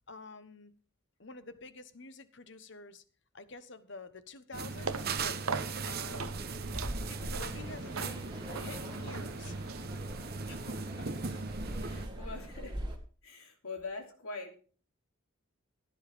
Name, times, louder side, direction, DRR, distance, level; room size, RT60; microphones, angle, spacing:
voice 1, 0.1-0.7 1.2-3.0 3.3-5.4 5.9-6.7 7.1-9.6, left 3 dB, 55° left, 12 dB, 1.1 m, -48 dB
sound 1, 4.5-12.1, right 4 dB, 45° right, 0.9 m, -39 dB
sound 2, 4.7-10.3, right 5 dB, 80° right, 1.0 m, -42 dB
sound 3, 4.8-13.0, equal, 20° right, 2.1 m, -43 dB
voice 2, 10.4-11.4 11.8-12.8 13.2-14.6, left 3 dB, 85° left, 2 dB, 3.0 m, -44 dB
15.5 x 10.5 x 3.5 m, 0.40 s
head